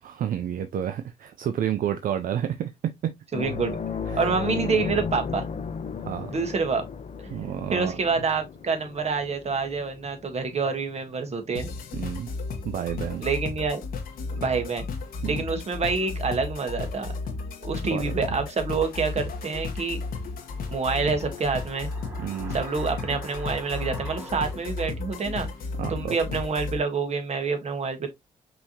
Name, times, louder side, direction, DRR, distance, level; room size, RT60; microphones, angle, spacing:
voice 1, 0.0-3.1 4.1-4.2 6.0-6.3 7.3-7.9 11.9-12.3 12.6-13.3 15.2-15.4 17.9-18.4 22.2-22.6 25.8-26.2, right 10 dB, 70° right, 0.5 m, -30 dB
sound 1, 3.3-12.3 12.6-12.8 14.8-14.9, left 6 dB, 50° left, 0.8 m, -35 dB
voice 2, 3.3-3.8 4.2-5.5 6.3-6.8 7.2-7.3 7.7-11.7 13.2-13.8 14.3-14.8 15.2-17.1 17.6-20.0 20.7-21.9 22.5-25.5 25.9-28.1, right 4 dB, 45° right, 1.4 m, -27 dB
sound 2, 11.5-26.8, left 3 dB, 80° left, 1.2 m, -34 dB
sound 3, 20.4-25.5 25.8-25.9, right 2 dB, 20° right, 1.8 m, -45 dB
5.4 x 2.9 x 2.8 m
cardioid pair, 75°, 15 cm